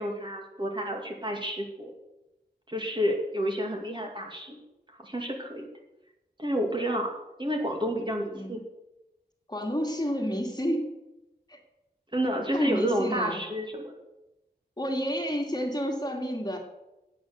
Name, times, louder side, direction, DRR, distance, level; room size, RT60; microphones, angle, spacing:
voice 1, 0.0-1.9 2.7-4.6 5.0-5.7 6.4-8.6 12.1-13.9, equal, 25° right, 1 dB, 2.2 m, -30 dB
voice 2, 9.5-11.0 11.5-11.6 12.5-13.4 14.8-16.6, equal, 25° left, 1 dB, 2.0 m, -30 dB
9.0 x 8.0 x 6.8 m, 0.96 s
wide cardioid pair, 50°, 18 cm